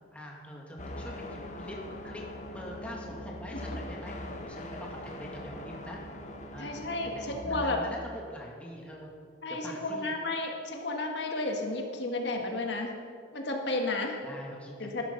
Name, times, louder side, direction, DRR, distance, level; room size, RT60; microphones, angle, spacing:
voice 1, 0.1-1.8 2.0-2.2 2.5-4.1 4.4-6.0 6.5-9.2 9.5-10.1 14.2-15.0, equal, 5° left, -2 dB, 2.0 m, -44 dB
sound 1, 0.8-7.4, left 1 dB, 40° left, 1.3 m, -41 dB
voice 2, 6.6-7.8 9.4-12.9 13.3-14.2 14.8-15.0, left 2 dB, 65° left, 2 dB, 1.7 m, -32 dB
12.5 x 12.0 x 5.8 m, 2.1 s
head